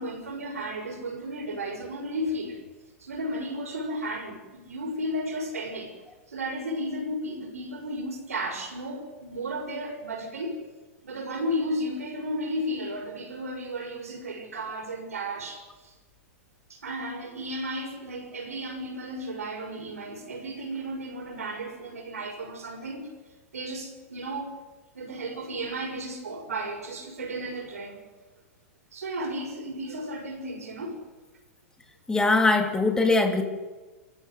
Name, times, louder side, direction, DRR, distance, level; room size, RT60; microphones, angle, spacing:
voice 1, 0.0-2.6 3.0-5.9 6.3-10.6 11.0-15.9 16.7-23.1 23.5-24.5 24.9-28.0 28.9-31.0, equal, 80° right, 4 dB, 6.7 m, -34 dB
voice 2, 32.1-33.4, left 3 dB, 10° left, 4 dB, 2.8 m, -21 dB
28.0 x 14.5 x 8.1 m, 1.2 s
hypercardioid pair, 105°, 8 cm